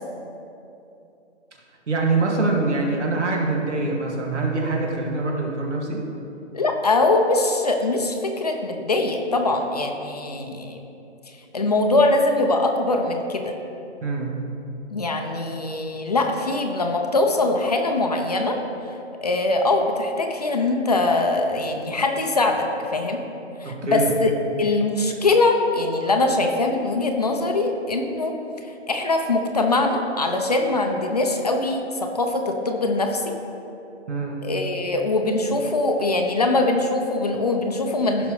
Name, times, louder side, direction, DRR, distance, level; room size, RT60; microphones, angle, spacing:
voice 1, 1.9-6.0 14.0-14.4 23.6-24.2 34.1-34.4, right 3 dB, 75° right, -1 dB, 2.3 m, -24 dB
voice 2, 6.5-10.8 11.5-13.5 14.9-18.6 18.9-19.0 19.2-23.2 23.6-24.3 24.6-28.4 28.9-33.4 34.4-38.3, left 2 dB, 35° left, 3 dB, 0.7 m, -22 dB
16.0 x 5.9 x 3.2 m, 2.8 s
hypercardioid pair, 170°, 35 cm